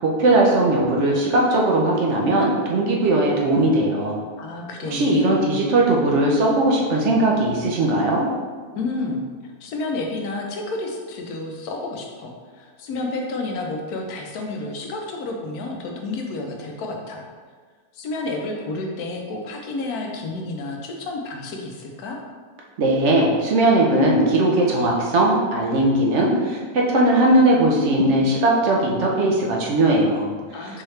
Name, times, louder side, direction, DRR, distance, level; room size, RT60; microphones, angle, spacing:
voice 1, 0.0-4.2 4.9-8.3 22.8-30.3 30.6-30.8, right 1 dB, 60° right, -2 dB, 0.8 m, -19 dB
voice 2, 4.4-5.3 8.7-9.2 9.6-17.3 17.9-22.2 30.5-30.8, left 2 dB, 70° left, 1 dB, 1.1 m, -30 dB
4.6 x 3.1 x 3.2 m, 1.5 s
omnidirectional pair, 1.8 m